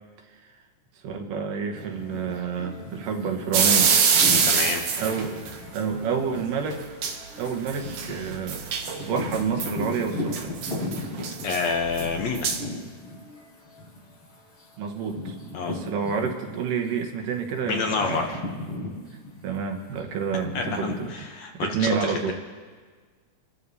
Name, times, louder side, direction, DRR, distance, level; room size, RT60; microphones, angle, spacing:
voice 1, 1.0-4.0 5.0-8.7 9.1-10.5 14.8-18.4 19.4-21.2 21.5-22.3, right 6 dB, 85° right, 3 dB, 2.9 m, -29 dB
sound 1, 1.7-16.9 17.2-21.1, left 1 dB, 45° left, 4.4 m, -37 dB
sound 2, 3.5-5.5 6.7-6.8 7.0-7.2 7.5-9.7 10.3-12.6, right 6 dB, 70° right, 2.3 m, -24 dB
voice 2, 4.4-4.9 11.4-12.5 15.5-15.8 17.7-18.4 20.6-22.3, left 5 dB, 70° left, 2 dB, 1.8 m, -28 dB
26.5 x 12.5 x 2.8 m, 1.5 s
omnidirectional pair, 3.8 m